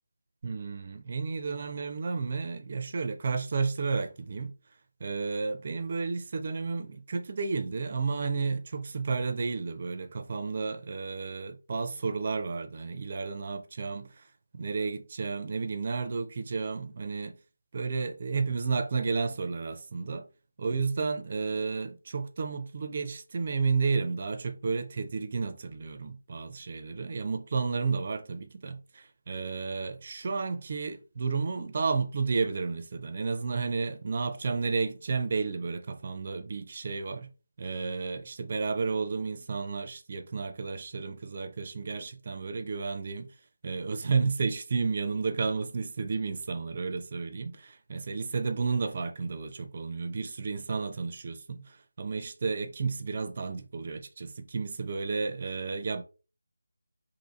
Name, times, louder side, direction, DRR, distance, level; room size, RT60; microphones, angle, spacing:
voice 1, 0.4-4.5 5.0-14.2 14.5-17.4 17.7-20.3 20.6-37.3 37.6-43.3 43.6-56.0, right 4 dB, 40° right, 0.5 m, -32 dB
2.7 x 2.6 x 4.1 m
figure-of-eight pair, 165°, 0 cm